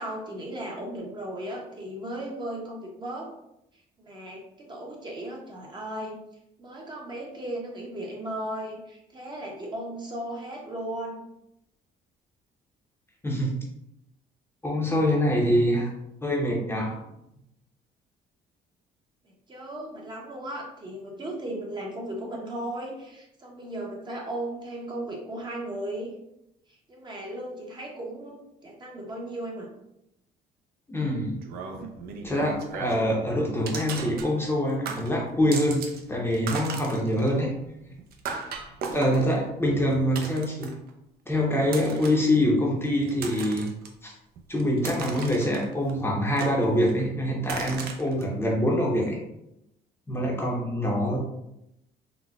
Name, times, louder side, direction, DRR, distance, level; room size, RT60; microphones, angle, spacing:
voice 1, 0.0-3.3 4.0-6.2 6.6-11.2 19.2-26.1 26.7-29.7, right 1 dB, 25° right, -1 dB, 0.7 m, -36 dB
voice 2, 13.2-13.5 14.6-15.9 16.2-17.0 30.9-31.4 32.2-37.5 38.9-40.7 41.3-43.7 44.0-44.1 44.5-49.2 50.1-51.2, equal, 15° left, -2 dB, 0.6 m, -25 dB
sound 1, 31.4-33.2 33.7-34.6 34.8-36.0 36.3-40.9 41.6-42.3 42.8-43.9 44.4-45.9 46.4-47.0 47.4-48.2, right 5 dB, 65° right, 0.5 m, -37 dB
3.9 x 2.1 x 2.3 m, 0.82 s
cardioid pair, 110°, 17 cm